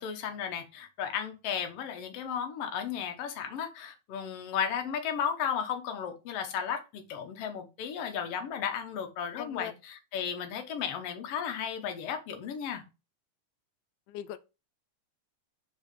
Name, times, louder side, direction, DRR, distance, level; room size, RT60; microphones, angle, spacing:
voice 1, 0.0-12.8, left 8 dB, 60° left, 1.8 m, -34 dB
voice 2, 9.4-9.7 14.1-14.4, left 12 dB, 80° left, 2.0 m, -40 dB
4.8 x 4.7 x 5.3 m
omnidirectional pair, 3.7 m